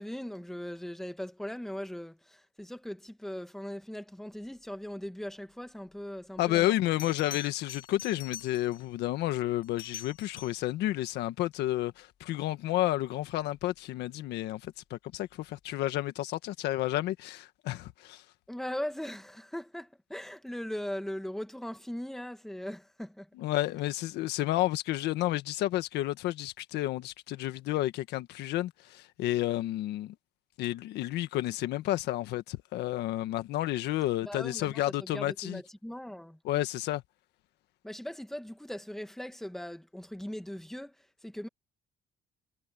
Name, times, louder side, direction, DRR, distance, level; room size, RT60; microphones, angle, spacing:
voice 1, 0.0-6.7 18.5-23.3 34.2-36.4 37.8-40.9 41.2-41.5, left 1 dB, ahead, 1.6 m, -39 dB
voice 2, 6.4-18.2 23.4-30.1 30.6-35.6 36.4-37.0, left 15 dB, 80° left, 1.6 m, -31 dB
Bell, 6.4-6.5 7.0-8.9 9.6-10.7 13.4-13.6, left 8 dB, 60° left, 5.3 m, -45 dB
cardioid pair, 110°, 17 cm